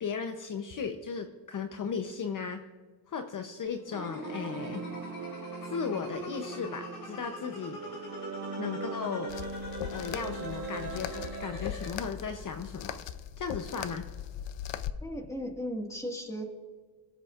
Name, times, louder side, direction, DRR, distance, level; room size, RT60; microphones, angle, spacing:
voice 1, 0.0-2.6 3.1-4.8 5.6-7.8 8.6-9.3 9.9-13.0 13.4-14.0, left 6 dB, 45° left, 6 dB, 0.8 m, -36 dB
sound 1, 3.7-11.7, right 4 dB, 40° right, 0.7 m, -41 dB
sound 2, 3.9-11.9, left 2 dB, 65° left, 4.1 m, -43 dB
sound 3, 9.3-14.9, left 10 dB, 80° left, 0.7 m, -39 dB
voice 2, 15.0-16.4, equal, 5° left, 2 dB, 1.8 m, -36 dB
23.0 x 8.2 x 2.5 m, 1.4 s
cardioid pair, 110°, 43 cm